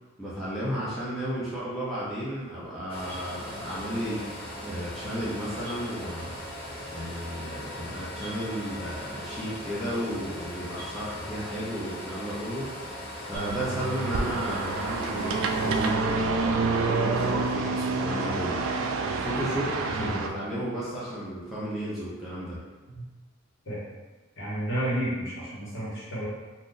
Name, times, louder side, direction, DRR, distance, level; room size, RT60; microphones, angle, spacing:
voice 1, 0.2-4.3 4.6-6.4 6.9-18.6 18.9-22.6, equal, ahead, -10 dB, 0.6 m, -33 dB
sound 1, 2.9-15.9, left 1 dB, 45° left, 1.0 m, -39 dB
sound 2, 13.3-20.3, right 3 dB, 70° right, 0.3 m, -28 dB
voice 2, 24.4-26.3, right 1 dB, 65° left, -8 dB, 1.3 m, -31 dB
2.5 x 2.5 x 3.8 m, 1.2 s
head